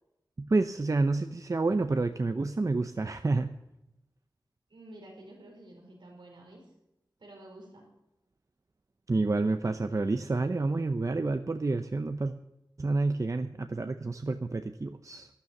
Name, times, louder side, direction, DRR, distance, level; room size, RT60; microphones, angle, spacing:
voice 1, 0.4-3.5 9.1-12.3 12.8-15.3, right 3 dB, 45° right, 8 dB, 0.7 m, -29 dB
voice 2, 4.7-6.6 7.2-7.9, right 1 dB, 90° right, 0 dB, 5.0 m, -50 dB
12.5 x 12.0 x 7.1 m, 0.89 s
wide cardioid pair, 60°, 8 cm